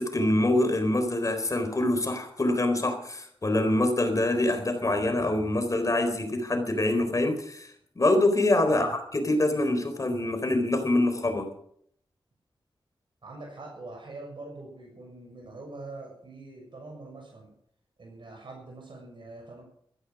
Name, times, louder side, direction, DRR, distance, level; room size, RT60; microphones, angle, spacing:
voice 1, 0.0-11.5, left 1 dB, 40° left, 7 dB, 4.0 m, -25 dB
voice 2, 13.2-17.5 18.0-19.6, right 2 dB, 65° right, -1 dB, 6.9 m, -43 dB
15.0 x 14.0 x 6.1 m, 0.67 s
wide cardioid pair, 75°, 9 cm